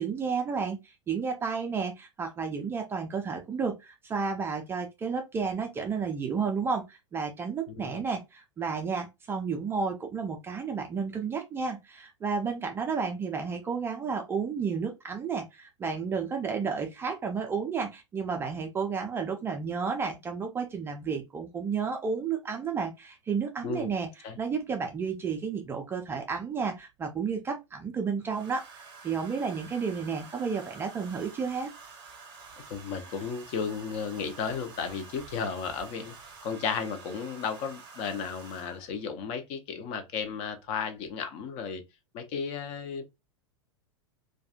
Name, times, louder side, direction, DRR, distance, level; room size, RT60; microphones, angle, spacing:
voice 1, 0.0-24.1 24.4-28.6 29.0-31.7, right 5 dB, 15° right, 0.4 m, -32 dB
Domestic sounds home sounds, 24.6-24.7 26.2-26.8 28.2-39.0 40.2-40.5 40.8-41.1, right 5 dB, 30° right, 0.8 m, -49 dB
voice 2, 32.7-36.1 36.4-41.8 42.1-43.0, left 6 dB, 35° left, 0.5 m, -34 dB
2.3 x 2.2 x 2.6 m
figure-of-eight pair, 90°, 16 cm